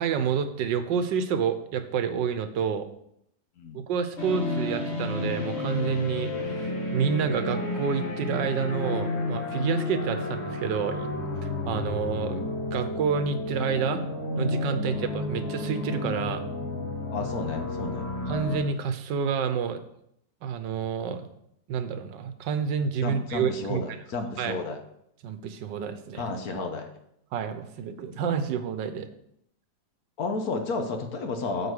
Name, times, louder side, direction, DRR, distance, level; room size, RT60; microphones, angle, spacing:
voice 1, 0.0-2.9 3.7-11.1 11.7-14.0 14.4-16.4 18.3-19.8 20.4-21.3 21.7-23.8 24.4-24.6 25.2-26.2 27.3-29.1, right 7 dB, 75° right, 9 dB, 1.4 m, -29 dB
sound 1, 4.2-18.6, left 2 dB, 40° left, 1.5 m, -31 dB
voice 2, 17.1-18.1 23.0-24.8 26.1-26.9 30.2-31.7, left 3 dB, 60° left, 5 dB, 1.3 m, -32 dB
8.1 x 4.9 x 6.4 m, 0.73 s
omnidirectional pair, 2.0 m